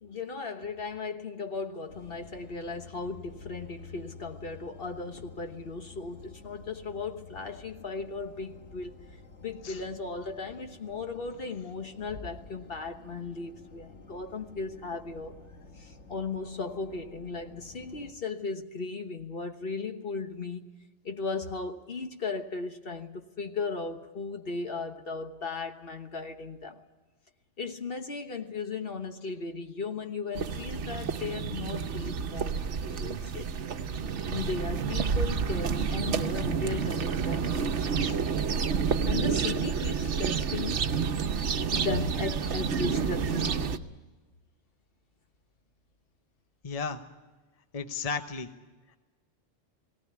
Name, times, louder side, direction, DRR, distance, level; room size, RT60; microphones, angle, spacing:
voice 1, 0.0-8.9 9.4-15.3 15.8-20.7 21.0-26.8 27.6-33.5 34.3-38.0 39.0-41.1 41.7-43.7, left 4 dB, 55° left, 1.4 m, -36 dB
sound 1, 1.9-18.1, left 4 dB, 80° left, 2.0 m, -50 dB
sound 2, 30.3-43.8, right 6 dB, 80° right, 1.2 m, -29 dB
voice 2, 46.6-47.0 47.7-48.5, left 5 dB, 35° left, 1.0 m, -34 dB
19.0 x 18.0 x 9.6 m
omnidirectional pair, 1.2 m